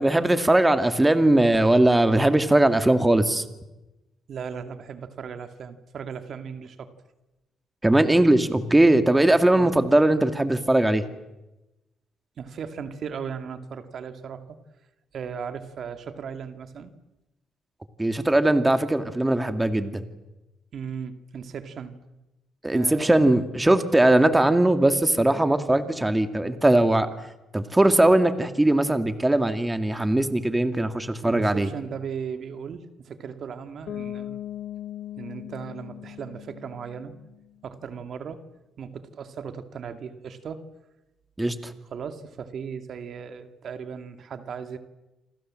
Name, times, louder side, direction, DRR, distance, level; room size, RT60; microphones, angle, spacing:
voice 1, 0.0-3.4 7.8-11.0 18.0-20.0 22.6-27.1 27.5-31.7 41.4-41.7, right 1 dB, 10° right, 9 dB, 2.2 m, -20 dB
voice 2, 4.3-6.9 9.5-9.7 12.4-14.6 15.1-16.9 20.7-21.9 22.7-23.3 31.2-34.5 35.2-37.1 37.6-38.4 38.8-40.6 41.9-44.8, right 6 dB, 60° right, 9 dB, 2.3 m, -37 dB
Bass guitar, 33.9-37.6, left 11 dB, 70° left, 2.6 m, -38 dB
29.0 x 25.0 x 7.7 m, 1.0 s
cardioid pair, 90°, 0 cm